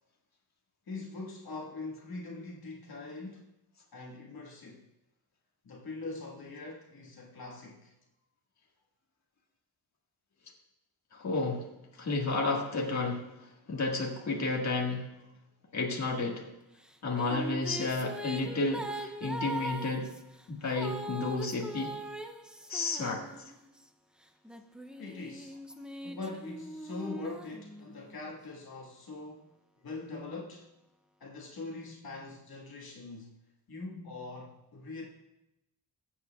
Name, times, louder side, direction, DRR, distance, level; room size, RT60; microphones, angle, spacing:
voice 1, 0.9-3.5 3.9-4.8 5.6-7.9 25.0-25.6 26.0-29.5 29.8-30.7 31.2-33.3 33.7-35.0, left 3 dB, 60° left, 1.6 m, -42 dB
voice 2, 11.1-11.7 12.0-15.1 15.7-16.4 17.0-20.1 20.5-21.9 22.7-23.2, left 3 dB, 40° left, 1.7 m, -31 dB
sound 1, 16.8-23.8 24.4-28.2, equal, ahead, 0.4 m, -41 dB
21.5 x 8.0 x 2.3 m
wide cardioid pair, 155°, 40 cm